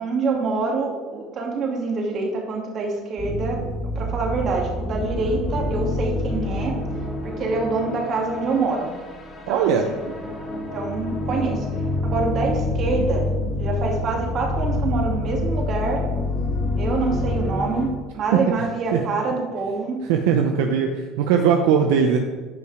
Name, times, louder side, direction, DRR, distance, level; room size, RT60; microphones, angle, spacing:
voice 1, 0.0-3.6 4.0-6.8 7.2-8.9 9.5-10.0 10.7-11.7 12.0-13.3 13.6-16.0 16.8-20.0, right 3 dB, 50° right, 0 dB, 2.5 m, -26 dB
sound 1, 3.2-17.9, left 2 dB, 35° left, 2.8 m, -27 dB
voice 2, 9.5-9.9 18.3-18.4 18.9-19.0 20.0-22.2, right 7 dB, 80° right, 4 dB, 0.7 m, -19 dB
10.5 x 5.7 x 5.0 m, 1.4 s
supercardioid pair, 90°, 0 cm